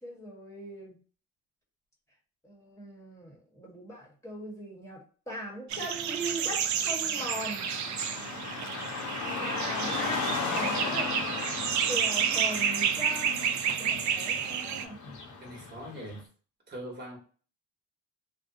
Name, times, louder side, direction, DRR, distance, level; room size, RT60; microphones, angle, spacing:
voice 1, 0.0-1.0 2.4-7.7 9.2-11.2 11.8-15.0, right 1 dB, 10° left, -3 dB, 1.1 m, -40 dB
sound 1, 5.7-14.8, right 8 dB, 70° right, 0.5 m, -30 dB
Car passing by / Traffic noise roadway noise, 7.2-16.2, left 4 dB, 75° left, 0.9 m, -36 dB
voice 2, 15.4-16.3 16.7-17.2, equal, 35° right, -1 dB, 1.0 m, -41 dB
2.6 x 2.1 x 2.6 m, 0.40 s
cardioid pair, 90°, 30 cm